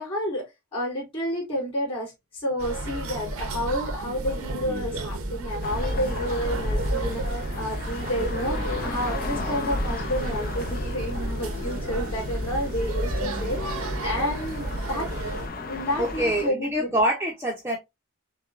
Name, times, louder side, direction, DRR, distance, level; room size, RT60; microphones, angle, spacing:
voice 1, 0.0-16.9, equal, 25° left, 2.9 m, -30 dB
sound 1, 2.6-15.5, right 2 dB, 85° right, 0.8 m, -32 dB
sound 2, 5.6-16.5, left 2 dB, 45° left, 0.6 m, -33 dB
voice 2, 16.0-17.8, right 1 dB, 10° right, 0.7 m, -25 dB
6.2 x 2.3 x 2.5 m
head